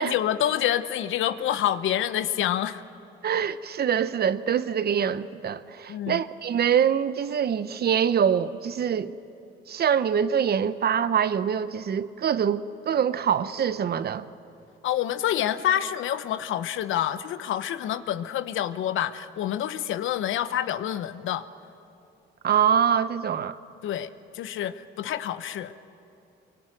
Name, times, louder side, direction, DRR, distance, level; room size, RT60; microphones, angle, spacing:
voice 1, 0.0-2.8 5.9-6.2 14.8-21.5 23.8-24.1 24.3-25.7, left 11 dB, 80° left, 0.9 m, -27 dB
voice 2, 3.2-9.2 9.7-14.3 22.4-23.6, right 8 dB, 55° right, 0.9 m, -24 dB
24.0 x 23.5 x 9.1 m
cardioid pair, 90°, 20 cm